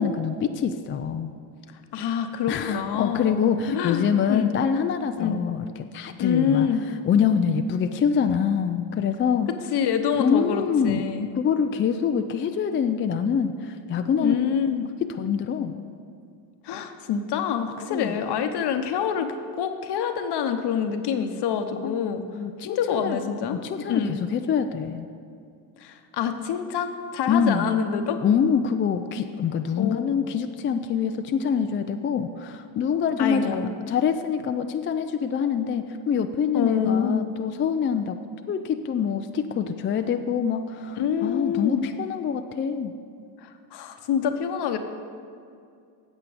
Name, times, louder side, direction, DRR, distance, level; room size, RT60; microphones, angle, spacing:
voice 1, 0.0-1.3 2.5-5.7 5.9-6.7 7.1-9.5 10.2-11.0 11.4-14.4 15.0-15.7 17.9-18.1 21.8-22.0 22.3-25.1 27.3-27.7 28.2-38.2 38.5-42.9, left 7 dB, 25° left, 7 dB, 0.4 m, -25 dB
voice 2, 1.9-4.5 5.2-5.4 6.2-6.8 9.7-11.3 14.2-14.8 16.6-22.2 22.7-23.6 23.9-24.2 25.8-28.2 29.8-30.1 33.2-33.7 36.5-37.2 41.0-41.8 43.4-44.8, left 7 dB, 55° left, 7 dB, 1.0 m, -26 dB
8.3 x 7.4 x 5.0 m, 2.3 s
supercardioid pair, 70°, 49 cm